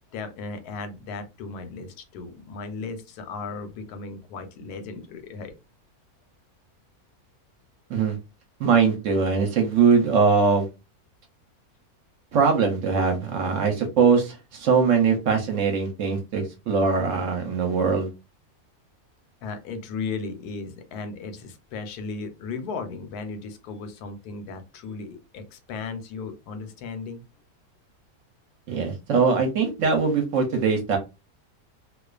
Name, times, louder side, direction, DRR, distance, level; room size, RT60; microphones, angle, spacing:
voice 1, 0.1-5.5 19.4-27.2, left 4 dB, 85° left, 8 dB, 1.1 m, -36 dB
voice 2, 8.6-10.7 12.3-18.1 28.7-31.0, right 5 dB, 65° right, 4 dB, 0.9 m, -21 dB
2.4 x 2.3 x 2.3 m, 0.26 s
omnidirectional pair, 1.6 m